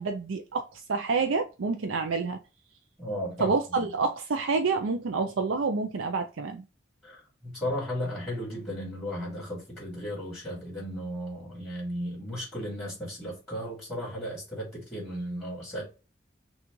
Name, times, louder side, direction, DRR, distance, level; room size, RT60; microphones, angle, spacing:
voice 1, 0.0-2.4 3.4-6.6, right 4 dB, 90° right, 0.5 m, -28 dB
voice 2, 3.0-3.9 7.0-15.8, equal, 10° left, 2.4 m, -35 dB
6.2 x 2.4 x 3.0 m
head